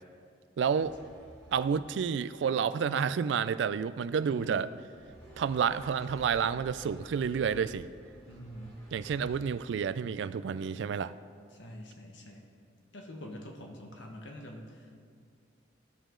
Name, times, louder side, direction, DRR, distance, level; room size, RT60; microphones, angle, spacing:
voice 1, 0.6-1.0 1.5-4.7 5.4-7.9 8.9-11.1, right 7 dB, 70° right, 15 dB, 0.3 m, -30 dB
sound 1, 0.7-9.8, equal, 20° left, 2.2 m, -53 dB
voice 2, 4.2-4.6 8.3-8.8 11.5-12.5 12.9-15.0, equal, 80° left, 1 dB, 1.1 m, -45 dB
15.0 x 5.1 x 3.7 m, 2.1 s
head